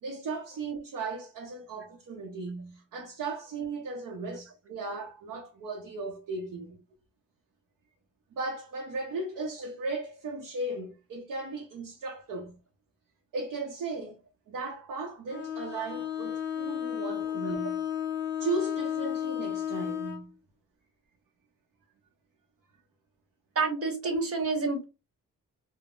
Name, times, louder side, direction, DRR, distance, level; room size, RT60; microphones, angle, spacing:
voice 1, 0.0-6.8 8.3-12.6 13.3-14.2 14.5-17.8 18.4-20.3, right 3 dB, 65° right, 0.7 m, -36 dB
Bowed string instrument, 15.3-20.3, left 9 dB, 35° left, 0.8 m, -33 dB
voice 2, 23.5-24.8, right 3 dB, 40° right, 1.0 m, -28 dB
3.5 x 2.0 x 2.4 m
cardioid pair, 120°, 34 cm